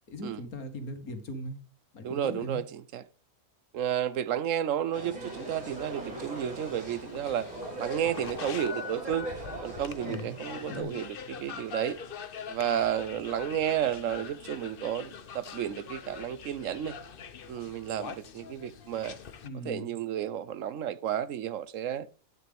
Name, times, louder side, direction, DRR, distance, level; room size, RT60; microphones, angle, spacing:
voice 1, 0.1-1.6 1.9-2.6 10.0-10.3 10.7-10.9 19.4-19.9, left 1 dB, 85° left, 2.1 m, -39 dB
voice 2, 2.0-3.0 3.7-7.5 7.8-9.3 9.6-12.0 12.5-17.0 17.5-19.2 19.6-22.1, right 10 dB, 70° right, 1.0 m, -32 dB
sound 1, 4.9-10.8, right 1 dB, 85° right, 4.3 m, -40 dB
sound 2, 5.2-19.5, left 6 dB, 45° left, 0.9 m, -44 dB
11.0 x 9.2 x 3.5 m
omnidirectional pair, 1.5 m